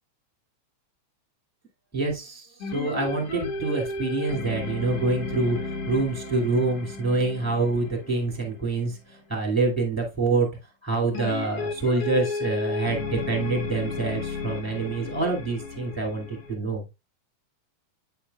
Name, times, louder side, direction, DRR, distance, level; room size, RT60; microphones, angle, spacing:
voice 1, 1.9-10.5 10.8-16.9, right 3 dB, 5° left, -1 dB, 1.9 m, -26 dB
sound 1, 2.6-9.2 11.1-16.5, left 3 dB, 55° left, 1.9 m, -33 dB
9.6 x 5.8 x 2.4 m, 0.24 s
omnidirectional pair, 3.7 m